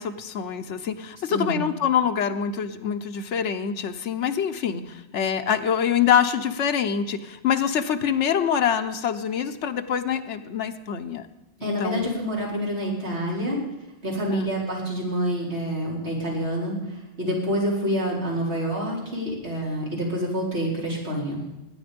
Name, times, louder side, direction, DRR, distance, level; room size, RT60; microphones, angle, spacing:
voice 1, 0.0-11.3 11.6-12.1 14.3-14.5, left 8 dB, 85° left, 6 dB, 1.1 m, -25 dB
voice 2, 11.6-13.6 14.0-16.8 17.2-21.4, equal, 70° right, -4 dB, 4.7 m, -27 dB
20.0 x 9.4 x 5.2 m, 0.99 s
omnidirectional pair, 1.2 m